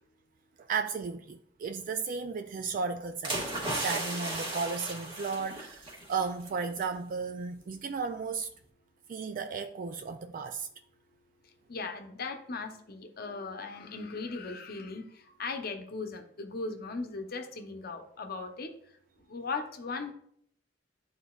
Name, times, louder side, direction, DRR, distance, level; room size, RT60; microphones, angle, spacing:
voice 1, 0.6-3.4 3.8-8.5 9.1-10.7, right 5 dB, 45° right, 0.3 m, -34 dB
sound 1, 3.2-6.3 6.6-6.8, right 1 dB, 30° right, 1.6 m, -35 dB
voice 2, 11.7-18.7 19.3-20.1, left 4 dB, 55° left, 0.8 m, -38 dB
11.5 x 3.9 x 2.3 m
head